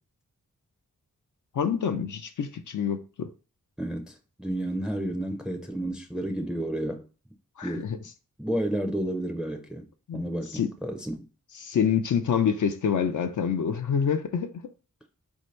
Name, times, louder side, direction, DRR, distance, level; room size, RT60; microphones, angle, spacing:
voice 1, 1.5-3.3 7.6-8.0 10.1-10.2 10.5-10.7 11.6-14.5, left 7 dB, 65° left, 0.5 m, -26 dB
voice 2, 3.8-7.0 7.6-8.0 8.4-9.9 10.1-11.3, right 1 dB, ahead, 0.5 m, -31 dB
4.4 x 2.7 x 3.1 m
wide cardioid pair, 115°, 32 cm